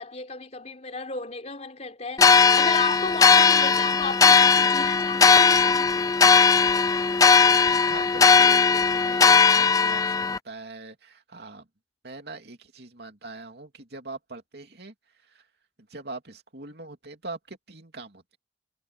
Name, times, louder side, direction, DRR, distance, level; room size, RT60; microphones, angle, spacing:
voice 1, 0.0-5.9, left 4 dB, 40° left, 4.3 m, -33 dB
sound 1, 2.2-10.4, left 5 dB, 20° left, 0.3 m, -18 dB
voice 2, 7.7-11.7 12.0-14.9 15.3-15.4 15.9-18.4, right 3 dB, 65° right, 3.0 m, -42 dB
head